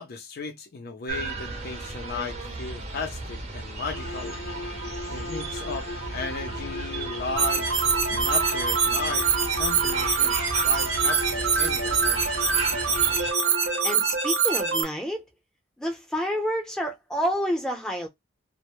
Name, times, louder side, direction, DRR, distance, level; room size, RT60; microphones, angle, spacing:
voice 1, 0.0-4.4 5.1-10.4 10.6-12.4, left 4 dB, 50° left, 0.4 m, -36 dB
sound 1, 1.1-13.3, right 3 dB, 35° right, 0.6 m, -35 dB
sound 2, 3.9-14.1, left 2 dB, 85° left, 0.7 m, -36 dB
sound 3, 7.4-14.8, right 6 dB, 75° right, 0.7 m, -24 dB
voice 2, 13.8-15.2 15.8-18.1, equal, 5° left, 0.7 m, -28 dB
2.1 x 2.0 x 2.9 m
head